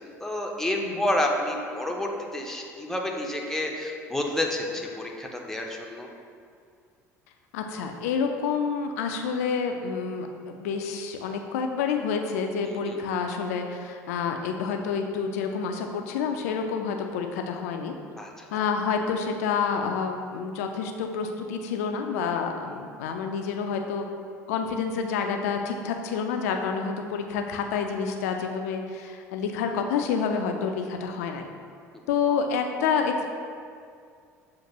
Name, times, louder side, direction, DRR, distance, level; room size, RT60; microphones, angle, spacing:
voice 1, 0.0-6.1 12.6-13.0 18.2-18.7, left 1 dB, 5° left, 0 dB, 0.6 m, -30 dB
voice 2, 7.5-17.9 18.5-24.0 24.5-31.4 32.1-33.3, left 6 dB, 70° left, 4 dB, 0.4 m, -28 dB
7.3 x 2.5 x 2.8 m, 2.3 s
figure-of-eight pair, 65°, 9 cm